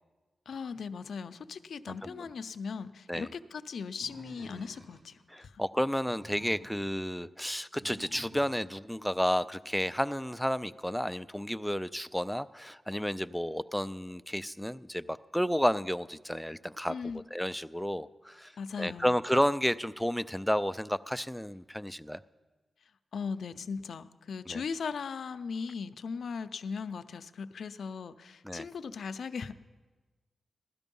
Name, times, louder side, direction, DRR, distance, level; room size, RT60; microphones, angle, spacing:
voice 1, 0.5-5.6 16.9-17.2 18.6-19.2 23.1-29.5, left 5 dB, 75° left, 12 dB, 0.5 m, -38 dB
Animal, 4.0-5.1 5.9-7.0 7.8-8.8, right 1 dB, 45° right, 2.5 m, -50 dB
voice 2, 5.3-17.0 17.3-18.5 18.8-22.2 24.5-24.6 28.4-28.7, equal, ahead, 13 dB, 0.3 m, -31 dB
16.0 x 12.5 x 5.4 m, 1.3 s
cardioid pair, 85°, 0 cm